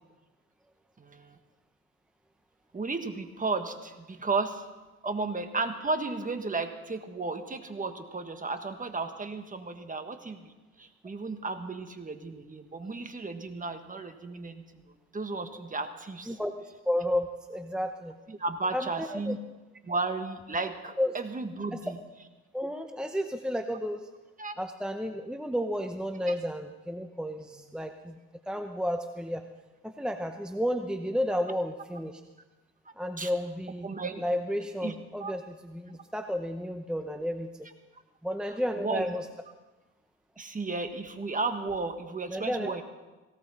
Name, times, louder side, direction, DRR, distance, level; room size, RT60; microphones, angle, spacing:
voice 1, 1.0-1.4 2.7-4.6 5.0-10.5 10.8-14.6 15.1-16.4 18.3-19.4 19.8-22.0 24.4-24.5 26.3-26.4 33.2-33.3 33.8-34.2 34.8-34.9 35.2-35.3 35.9-36.0 38.8-39.1 40.4-42.8, right 3 dB, 25° right, 7 dB, 1.5 m, -34 dB
voice 2, 16.3-18.2 18.7-19.3 21.0-21.2 21.7-21.8 22.5-24.1 24.6-28.2 28.5-29.4 29.8-32.2 33.0-33.9 34.2-37.5 38.2-39.3 42.3-42.8, equal, 5° right, 6 dB, 0.8 m, -32 dB
18.0 x 17.5 x 4.3 m, 1.2 s
cardioid pair, 90°, 30 cm